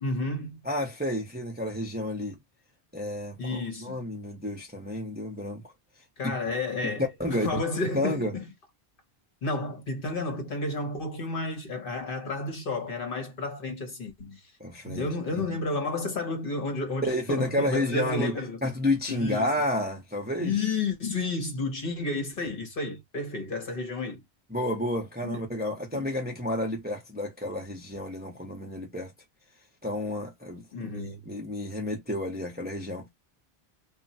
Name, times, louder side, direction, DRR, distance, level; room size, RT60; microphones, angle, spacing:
voice 1, 0.0-0.6 3.4-4.1 6.2-8.5 9.4-14.5 14.8-18.6 19.1-19.5 20.4-24.2 25.2-25.4 25.9-26.1 30.7-31.2, left 3 dB, 55° left, 1.1 m, -31 dB
voice 2, 0.6-2.4 2.9-5.7 6.2-6.3 7.2-7.6 7.9-8.3 14.6-15.5 17.1-18.3 18.6-20.5 24.5-29.1 29.8-33.1, left 1 dB, 10° right, 0.6 m, -31 dB
2.3 x 2.2 x 3.9 m
omnidirectional pair, 1.2 m